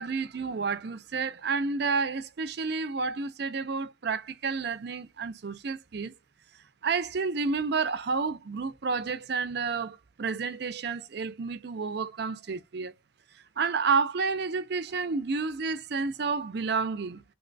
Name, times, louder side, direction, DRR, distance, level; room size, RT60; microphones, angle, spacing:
voice 1, 0.0-6.1 6.8-12.9 13.6-17.2, right 4 dB, 60° right, 0.5 m, -30 dB
2.9 x 2.2 x 3.9 m
head